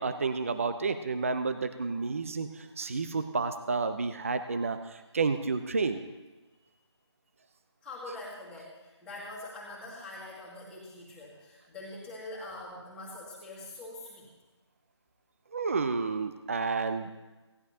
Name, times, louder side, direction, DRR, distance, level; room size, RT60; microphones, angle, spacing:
voice 1, 0.0-6.0 15.5-17.1, right 4 dB, 30° right, 9 dB, 0.6 m, -30 dB
voice 2, 7.8-14.3, left 2 dB, 5° left, -6 dB, 2.1 m, -44 dB
18.0 x 12.0 x 2.8 m, 1.2 s
figure-of-eight pair, 165°, 15 cm